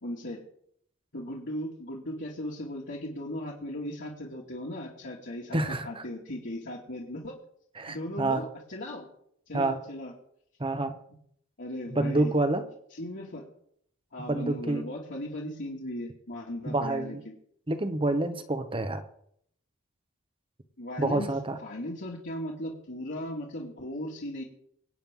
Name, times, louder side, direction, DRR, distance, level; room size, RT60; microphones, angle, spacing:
voice 1, 0.0-0.4 1.1-5.6 5.8-7.3 7.9-9.1 9.5-10.1 11.6-12.3 12.9-13.4 14.1-17.3 20.8-21.3 21.6-24.4, left 1 dB, 60° left, -4 dB, 2.6 m, -37 dB
voice 2, 5.5-6.0 7.8-8.4 9.5-9.8 10.6-10.9 11.9-12.6 14.3-14.8 16.7-17.2 17.7-19.0 21.0-21.6, right 2 dB, 25° right, 9 dB, 1.1 m, -28 dB
24.5 x 9.0 x 3.9 m, 0.70 s
head